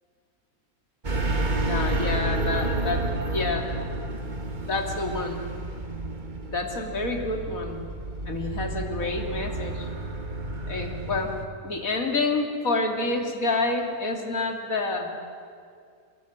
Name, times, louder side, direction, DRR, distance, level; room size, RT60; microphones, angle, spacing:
sound 1, 1.0-11.4, right 2 dB, 30° right, 1.6 m, -30 dB
voice 1, 1.7-3.0 3.3-3.7 4.7-5.4 6.5-7.9 8.3-9.9 10.7-11.3 11.6-15.1, left 3 dB, 60° left, 3 dB, 3.2 m, -28 dB
25.0 x 22.0 x 9.5 m, 2.3 s
omnidirectional pair, 1.6 m